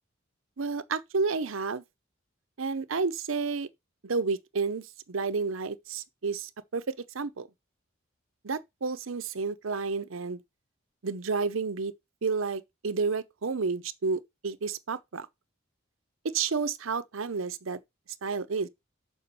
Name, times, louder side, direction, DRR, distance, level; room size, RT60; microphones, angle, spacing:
voice 1, 0.6-1.8 2.6-3.7 4.0-7.5 8.4-10.4 11.0-11.9 12.2-15.3 16.2-17.8 18.2-18.7, right 4 dB, 85° right, 0.7 m, -31 dB
6.9 x 5.0 x 5.5 m
head